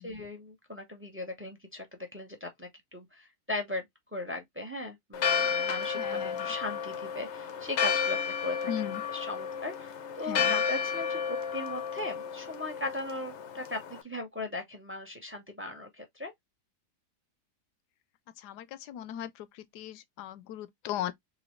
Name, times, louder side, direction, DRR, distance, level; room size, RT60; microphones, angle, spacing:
voice 1, 0.0-3.8 4.1-16.3, left 2 dB, 10° right, 0.6 m, -38 dB
Church bell, 5.1-14.0, left 7 dB, 60° left, 0.8 m, -32 dB
voice 2, 6.0-6.3 8.7-9.0 10.3-10.6 18.4-19.3 19.7-21.1, left 11 dB, 80° left, 1.2 m, -37 dB
3.9 x 3.0 x 3.1 m
omnidirectional pair, 1.8 m